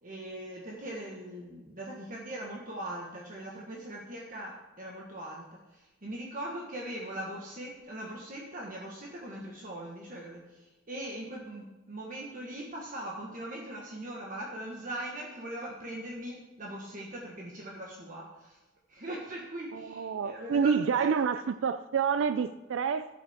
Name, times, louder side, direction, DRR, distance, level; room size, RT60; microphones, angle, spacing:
voice 1, 0.0-5.4 6.0-10.4 10.9-18.6 18.9-21.1, right 1 dB, 45° right, -2 dB, 1.4 m, -40 dB
voice 2, 19.7-23.1, right 6 dB, 85° right, 12 dB, 0.4 m, -28 dB
12.5 x 8.3 x 3.6 m, 1.1 s
head